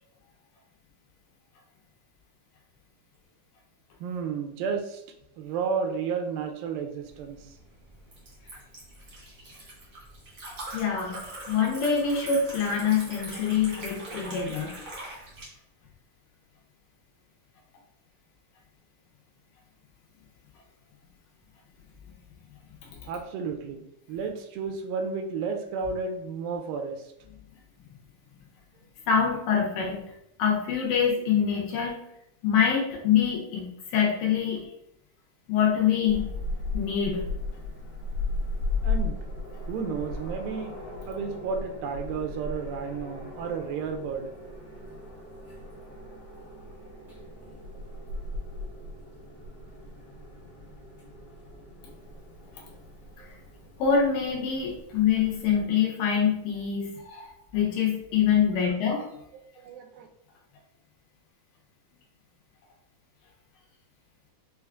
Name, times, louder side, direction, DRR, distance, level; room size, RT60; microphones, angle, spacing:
voice 1, 4.0-5.0 5.4-7.4 23.1-27.0 38.8-39.2 39.7-40.8 41.1-44.3 53.2-53.3 59.6-60.1, right 5 dB, 85° right, 5 dB, 2.3 m, -32 dB
Liquid, 7.1-15.4, right 1 dB, 60° right, 1.0 m, -42 dB
voice 2, 10.7-11.2 11.5-14.7 22.8-23.0 29.1-30.0 30.4-32.0 32.4-34.7 35.5-36.3 36.7-37.3 53.8-59.0, left 7 dB, 80° left, -1 dB, 2.5 m, -25 dB
sound 1, 36.0-55.6, left 3 dB, 60° left, 1.0 m, -36 dB
6.3 x 2.4 x 2.3 m, 0.77 s
omnidirectional pair, 4.0 m